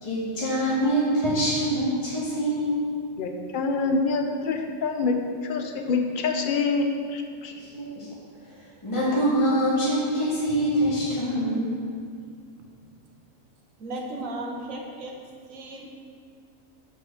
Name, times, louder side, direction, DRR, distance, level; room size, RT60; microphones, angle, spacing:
voice 1, 0.0-2.8 7.6-8.1 8.8-11.7, equal, 20° left, -8 dB, 1.9 m, -24 dB
voice 2, 3.2-5.1 5.4-7.5, left 4 dB, 50° left, 4 dB, 0.7 m, -26 dB
voice 3, 13.8-15.2 15.5-15.9, right 1 dB, 75° right, 1 dB, 1.4 m, -35 dB
5.9 x 5.5 x 6.5 m, 2.2 s
omnidirectional pair, 1.4 m